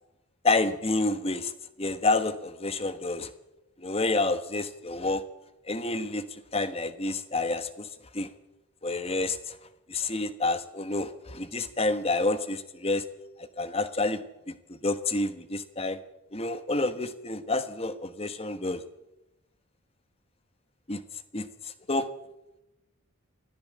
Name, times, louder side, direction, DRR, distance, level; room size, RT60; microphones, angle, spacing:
voice 1, 0.4-1.5 1.8-3.3 3.8-5.2 5.7-7.9 8.1-8.3 8.8-9.6 9.9-13.0 13.4-14.2 14.5-16.0 16.3-18.8 20.9-21.0 21.3-22.1, left 2 dB, 30° left, 11 dB, 1.3 m, -29 dB
23.5 x 14.5 x 7.6 m, 0.93 s
head